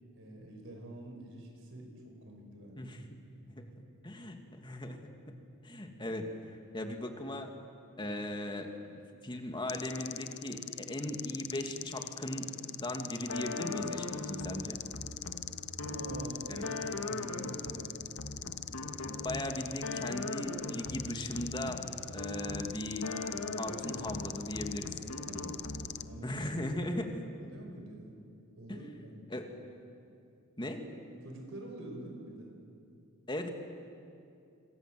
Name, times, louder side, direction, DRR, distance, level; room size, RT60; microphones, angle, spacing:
voice 1, 0.1-3.0 15.8-16.7 17.1-18.2 25.3-25.6 25.9-26.3 27.4-28.2 28.6-29.5 31.2-32.5, right 1 dB, 60° right, 3 dB, 5.4 m, -46 dB
voice 2, 4.0-5.3 5.6-6.3 6.7-7.6 8.0-12.5 12.8-14.8 16.5-16.7 19.2-21.8 22.1-23.1 23.6-24.9 26.2-27.2 28.7-28.8 29.3-29.6 30.6-30.9 33.3-33.5, left 1 dB, 20° left, 4 dB, 2.4 m, -38 dB
sound 1, 9.7-26.0, left 12 dB, 50° left, 0.7 m, -43 dB
sound 2, 13.3-26.2, left 2 dB, 80° left, 2.1 m, -40 dB
26.5 x 26.0 x 7.8 m, 2.5 s
head